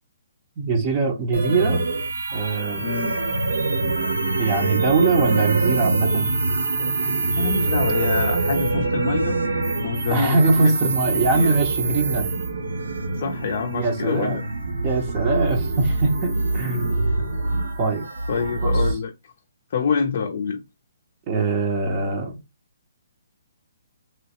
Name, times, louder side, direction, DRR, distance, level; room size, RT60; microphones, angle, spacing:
voice 1, 0.6-1.9 2.3-2.9 4.4-6.3 10.1-12.4 13.8-14.4 14.8-17.1 17.8-18.1 18.6-18.8 21.3-22.4, right 3 dB, 20° right, 0.7 m, -22 dB
sound 1, 1.3-18.9, right 3 dB, 80° right, 1.9 m, -24 dB
voice 2, 2.8-3.1 7.4-9.4 9.8-10.8 11.1-11.6 13.2-14.4 18.3-19.1 19.7-20.6, left 6 dB, 45° left, 0.5 m, -26 dB
3.1 x 2.9 x 2.9 m
hypercardioid pair, 165°, 0 cm